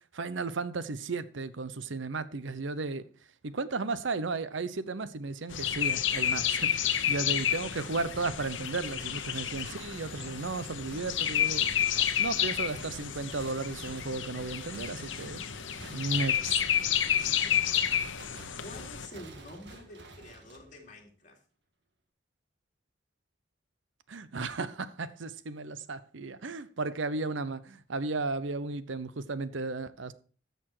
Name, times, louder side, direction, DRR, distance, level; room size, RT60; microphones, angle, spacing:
voice 1, 0.1-3.0 3.4-11.7 12.2-15.4 15.9-16.6 24.1-30.1, right 3 dB, 80° right, 0.8 m, -34 dB
sound 1, 5.5-19.1, left 9 dB, 80° left, 1.0 m, -30 dB
sound 2, 9.9-21.1, right 2 dB, 65° right, 1.7 m, -51 dB
voice 2, 17.2-17.7 18.6-21.4, left 1 dB, 40° left, 2.9 m, -48 dB
13.5 x 6.9 x 4.7 m
head